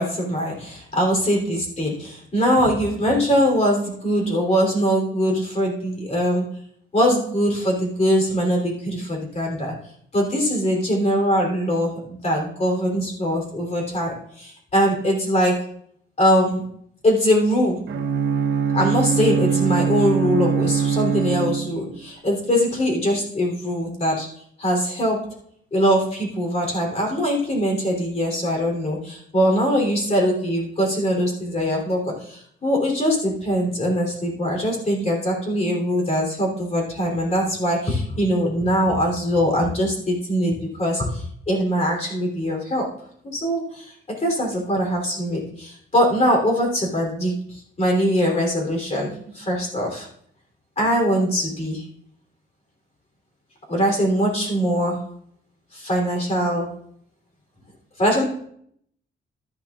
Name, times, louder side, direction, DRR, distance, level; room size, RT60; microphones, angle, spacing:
voice 1, 0.0-6.4 6.9-9.7 10.1-15.5 16.2-16.6 17.0-17.8 18.7-24.3 24.6-25.2 25.7-42.9 43.3-50.1 50.8-51.8 53.7-55.0 55.7-56.6 58.0-58.3, equal, 30° left, 0 dB, 3.2 m, -22 dB
Bowed string instrument, 17.9-22.1, right 6 dB, 70° right, 1.1 m, -22 dB
13.0 x 11.0 x 2.4 m, 0.67 s
wide cardioid pair, 140°, 21 cm